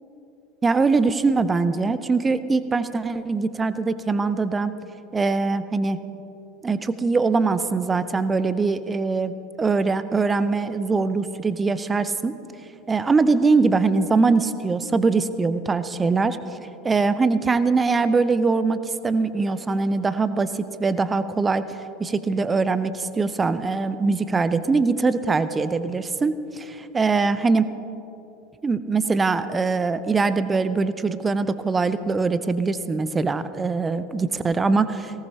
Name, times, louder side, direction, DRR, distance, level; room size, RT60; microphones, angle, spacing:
voice 1, 0.6-4.7 5.1-6.0 6.6-12.3 12.9-16.4 16.8-18.8 19.0-21.6 22.0-27.6 28.6-35.2, right 4 dB, 20° right, 13 dB, 0.6 m, -22 dB
18.5 x 18.0 x 2.9 m, 2.9 s
figure-of-eight pair, 75°, 0 cm